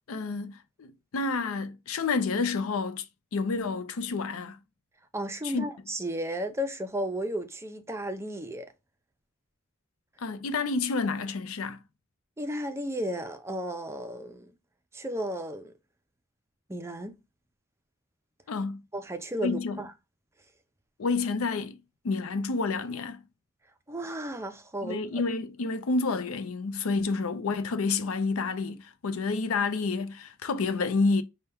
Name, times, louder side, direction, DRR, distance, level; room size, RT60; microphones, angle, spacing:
voice 1, 0.1-3.0 3.3-4.6 5.4-5.6 10.2-11.8 18.5-18.8 19.4-19.8 21.0-21.8 22.0-23.2 24.8-31.2, left 4 dB, 90° left, 0.5 m, -29 dB
voice 2, 5.1-8.7 12.4-14.5 14.9-15.7 16.7-17.1 18.9-19.9 23.9-25.2, equal, 15° right, 0.4 m, -34 dB
5.5 x 2.2 x 3.4 m
head